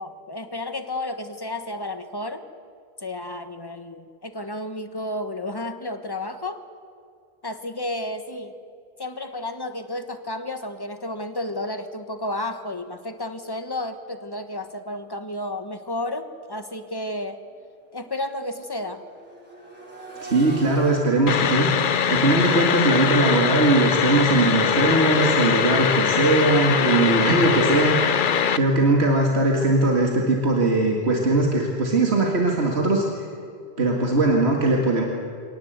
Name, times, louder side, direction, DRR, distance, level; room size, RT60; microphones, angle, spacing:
voice 1, 0.0-2.4 3.0-6.6 7.4-8.6 9.0-17.4 17.9-19.0, left 1 dB, 20° left, 8 dB, 1.3 m, -32 dB
Accelerating revving vroom, 16.7-16.8 17.2-27.1 28.8-28.9, right 2 dB, 10° right, 6.5 m, -45 dB
voice 2, 20.2-21.7 22.1-28.1 28.6-33.1 33.8-35.0, right 2 dB, 85° right, 0 dB, 2.3 m, -20 dB
sound 1, 21.3-28.6, left 7 dB, 55° left, 0.8 m, -22 dB
24.5 x 18.0 x 8.1 m, 2.3 s
omnidirectional pair, 1.1 m